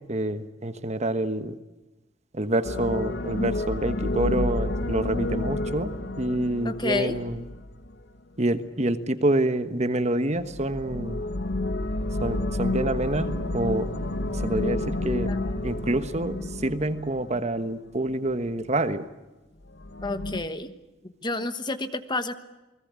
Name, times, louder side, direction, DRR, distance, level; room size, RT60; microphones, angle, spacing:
voice 1, 0.0-1.5 2.3-7.4 8.4-11.2 12.2-13.9 14.3-15.3 15.6-19.0, right 1 dB, 35° right, 10 dB, 1.3 m, -27 dB
sound 1, 2.6-8.0 10.3-17.7 19.7-20.4, left 2 dB, 60° left, 1.3 m, -30 dB
voice 2, 6.6-7.2 15.3-15.5 20.0-20.7 21.0-22.3, left 2 dB, 25° left, 10 dB, 1.2 m, -30 dB
sound 2, 12.9-17.6, right 1 dB, 60° right, 1.7 m, -43 dB
29.0 x 20.5 x 8.3 m, 1.1 s
head